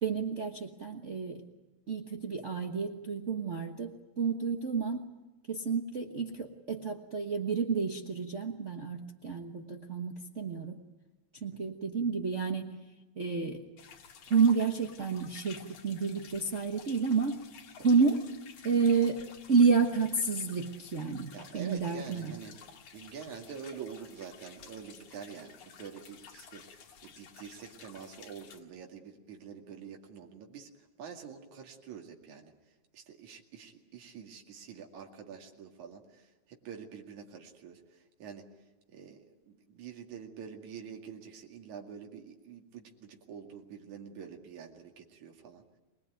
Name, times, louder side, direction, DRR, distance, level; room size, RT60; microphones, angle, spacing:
voice 1, 0.0-1.4 1.9-5.1 5.5-10.8 11.4-12.8 13.2-13.6 14.3-17.4 17.8-18.3 18.6-22.3, right 5 dB, 60° right, 3 dB, 0.7 m, -30 dB
sound 1, 13.8-28.6, left 7 dB, 80° left, 3.4 m, -53 dB
voice 2, 21.3-22.6 22.9-45.6, right 7 dB, 75° right, 2 dB, 3.6 m, -47 dB
24.5 x 21.0 x 9.2 m, 1.1 s
omnidirectional pair, 3.4 m